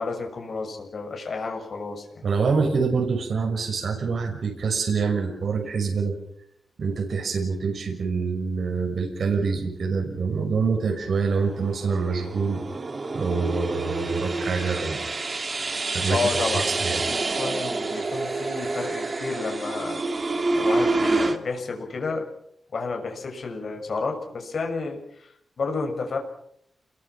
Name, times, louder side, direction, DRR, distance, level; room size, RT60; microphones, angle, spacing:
voice 1, 0.0-2.2 16.1-16.7 17.1-20.0 20.5-22.3 22.7-26.2, left 4 dB, 50° left, 3 dB, 6.4 m, -31 dB
voice 2, 2.2-6.1 6.8-12.6 13.1-15.2 15.5-15.6 15.9-16.2 16.5-17.0, right 5 dB, 60° right, 2 dB, 6.0 m, -26 dB
sound 1, 11.3-21.4, right 3 dB, 30° right, 2.1 m, -28 dB
29.0 x 22.5 x 6.0 m, 0.71 s
wide cardioid pair, 155°, 0 cm